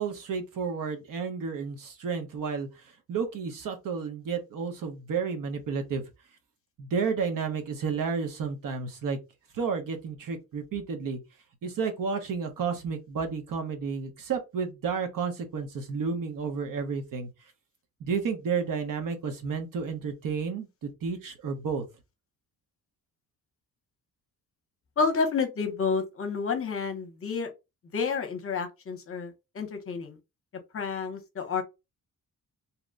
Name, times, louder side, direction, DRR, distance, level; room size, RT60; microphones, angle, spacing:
voice 1, 0.0-6.0 6.8-9.2 9.5-11.2 11.6-17.3 18.0-20.7 21.0-21.8, right 5 dB, 70° right, 0.9 m, -31 dB
voice 2, 25.0-27.5 27.9-30.2 30.7-31.6, left 5 dB, 40° left, 0.7 m, -30 dB
2.9 x 2.1 x 3.6 m
wide cardioid pair, 160°, 34 cm